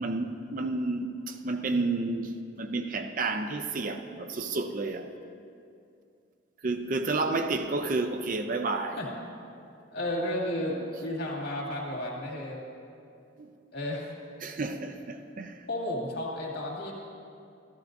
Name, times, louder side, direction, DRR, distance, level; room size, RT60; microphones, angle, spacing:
voice 1, 0.0-5.1 6.6-9.0 13.4-13.5 14.4-15.7, right 3 dB, 45° right, 6 dB, 0.5 m, -31 dB
voice 2, 9.9-12.6 13.7-14.1 15.7-16.9, left 1 dB, 60° left, -3 dB, 2.0 m, -33 dB
13.0 x 12.5 x 2.6 m, 2.5 s
head